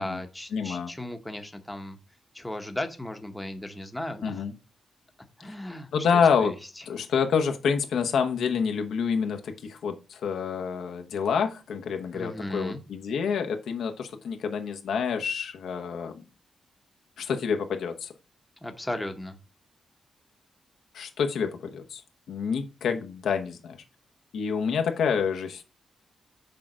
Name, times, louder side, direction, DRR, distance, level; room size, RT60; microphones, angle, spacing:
voice 1, 0.0-2.0 2.3-4.3 5.4-6.5 12.1-12.8 18.6-19.4, left 1 dB, 10° left, 5 dB, 0.9 m, -36 dB
voice 2, 0.5-0.9 4.2-4.5 5.9-6.6 6.9-16.2 17.2-18.1 20.9-22.0 22.3-23.8 24.3-25.6, left 6 dB, 85° left, 6 dB, 1.0 m, -27 dB
6.6 x 3.8 x 6.1 m, 0.31 s
wide cardioid pair, 125°, 0 cm